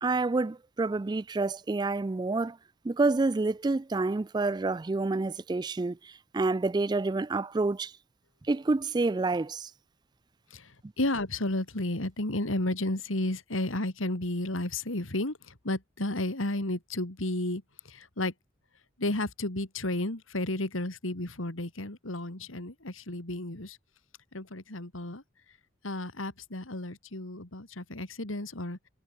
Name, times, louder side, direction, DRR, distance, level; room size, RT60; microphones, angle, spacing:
voice 1, 0.0-2.6 2.8-7.9 8.5-9.7, right 3 dB, 20° right, 0.3 m, -28 dB
voice 2, 10.5-18.3 19.0-23.8 24.3-25.2 25.8-28.8, left 1 dB, 80° left, 3.0 m, -32 dB
head